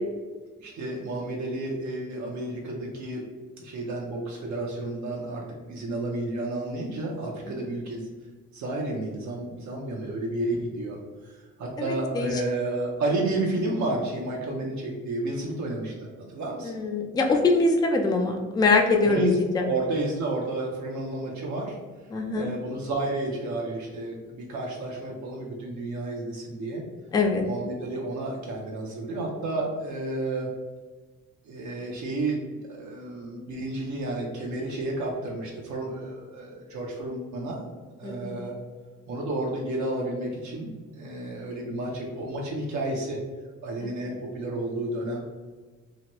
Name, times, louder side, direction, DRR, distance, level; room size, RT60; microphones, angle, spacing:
voice 1, 0.6-3.3 3.6-5.4 5.7-8.1 8.5-11.0 11.2-16.7 19.0-19.4 19.6-21.8 22.3-26.8 27.4-30.5 31.5-37.6 38.0-38.5 39.1-43.2 43.6-45.2, right 2 dB, 70° right, -2 dB, 0.6 m, -31 dB
voice 2, 11.8-12.4 16.6-19.3 19.5-19.7 22.1-22.5 27.1-27.4 38.0-38.3 43.8-43.9, left 3 dB, 15° left, 2 dB, 0.3 m, -23 dB
2.9 x 2.1 x 2.9 m, 1.3 s
cardioid pair, 90°, 30 cm